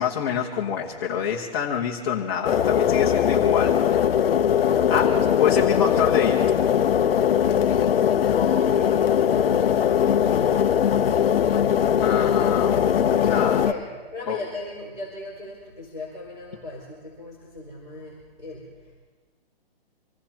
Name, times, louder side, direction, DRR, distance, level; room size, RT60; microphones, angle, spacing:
voice 1, 0.0-3.8 4.9-6.4 12.0-13.6 14.3-14.4, left 8 dB, 25° left, -3 dB, 1.2 m, -26 dB
sound 1, 2.4-13.7, left 9 dB, 70° left, 0.7 m, -20 dB
voice 2, 4.7-5.2 7.7-9.4 13.1-18.9, left 2 dB, 15° right, -8 dB, 4.5 m, -38 dB
26.5 x 18.0 x 3.0 m, 1.3 s
hypercardioid pair, 175°, 30 cm